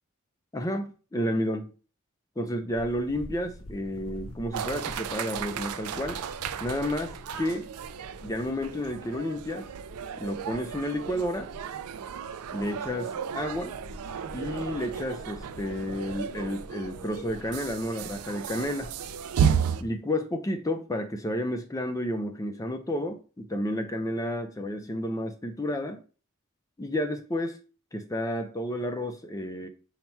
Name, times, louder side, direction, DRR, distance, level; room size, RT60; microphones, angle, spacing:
voice 1, 0.5-1.7 2.4-6.2 6.6-7.7 8.2-9.7 10.2-11.5 12.5-13.7 14.3-18.9 19.8-26.0 26.8-27.6 27.9-29.7, left 1 dB, 15° left, 0.5 m, -31 dB
sound 1, 2.7-19.9, left 1 dB, 80° left, 0.6 m, -48 dB
sound 2, 4.5-19.8, right 7 dB, 90° right, 0.4 m, -33 dB
5.6 x 2.1 x 4.4 m
head